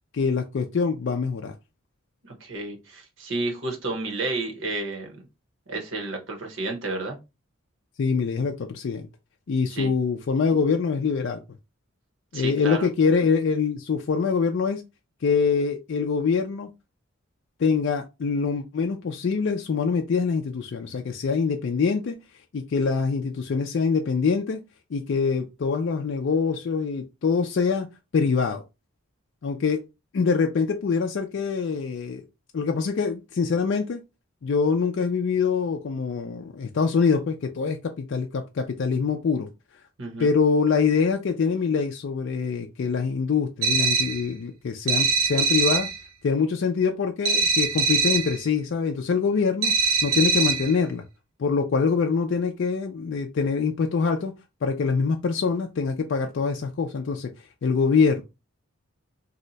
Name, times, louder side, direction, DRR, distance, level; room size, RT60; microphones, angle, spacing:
voice 1, 0.1-1.6 8.0-9.1 9.5-11.4 12.3-14.8 15.2-16.7 17.6-22.2 22.5-24.6 24.9-27.9 28.1-28.6 29.4-29.8 30.1-32.3 32.5-34.0 34.4-39.5 40.2-45.9 46.2-49.8 50.0-51.0 51.4-54.3 54.6-57.3 57.6-58.2, left 5 dB, 55° left, 0.4 m, -24 dB
voice 2, 2.2-5.2 5.7-7.2 9.7-9.9 12.3-12.9 40.0-40.3, right 2 dB, 60° right, 0.9 m, -31 dB
sound 1, 43.6-44.3 44.9-46.0 47.2-48.4 49.6-50.8, right 4 dB, 85° right, 0.5 m, -23 dB
2.7 x 2.1 x 3.9 m
head